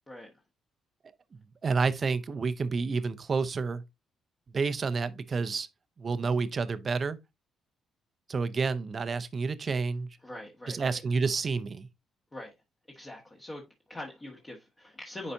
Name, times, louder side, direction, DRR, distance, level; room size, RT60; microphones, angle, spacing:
voice 1, 1.6-3.8 4.5-5.7 6.0-7.2 8.3-10.1 10.7-11.9, right 4 dB, 40° right, 0.7 m, -29 dB
voice 2, 10.2-11.0 12.3-12.5 12.9-15.3, left 1 dB, 20° left, 1.5 m, -43 dB
9.9 x 4.1 x 2.7 m
cardioid pair, 90°, 0 cm